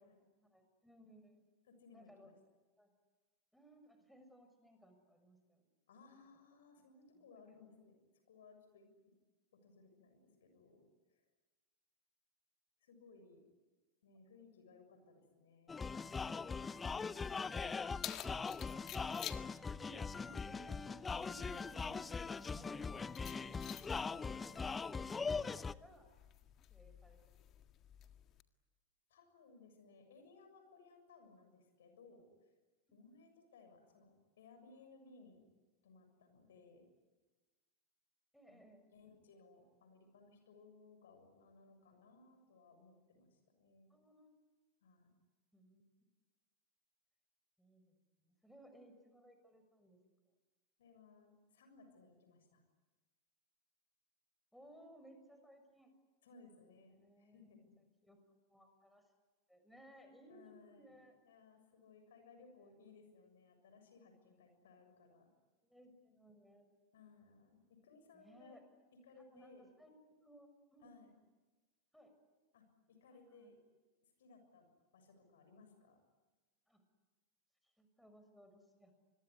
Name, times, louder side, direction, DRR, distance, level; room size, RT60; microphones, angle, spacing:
voice 1, 0.4-1.4 1.9-2.3 2.8-2.9 3.5-5.7 7.6-7.7 19.6-22.0 22.5-22.9 24.1-26.1 26.7-27.4 32.9-33.0 38.3-38.8 43.9-44.3 45.5-45.8 47.6-50.0 54.5-55.9 56.9-57.7 58.0-59.0 59.5-61.2 62.6-62.8 65.6-66.8 68.1-68.6 69.2-70.9 71.9-72.1 73.1-73.5 76.7-76.8 77.6-78.9, right 1 dB, ahead, 5 dB, 6.3 m, -62 dB
voice 2, 1.7-2.3 5.9-8.9 9.5-10.9 11.1-11.2 12.8-13.4 14.0-15.8 22.4-22.6 23.3-23.7 29.1-32.5 32.9-35.5 35.8-36.9 38.5-38.6 38.9-43.9 44.8-45.1 50.8-52.6 56.2-57.7 60.3-61.0 61.3-65.3 66.9-68.6 69.0-69.7 70.8-71.1 72.5-73.6 74.0-74.7 74.9-76.0, left 4 dB, 75° left, 7 dB, 6.9 m, -62 dB
sound 1, 15.7-25.7, left 5 dB, 20° left, 0.8 m, -41 dB
Keys jangling, 17.4-28.4, left 12 dB, 40° left, 1.8 m, -53 dB
26.5 x 22.0 x 9.8 m, 1.3 s
hypercardioid pair, 90°, 0 cm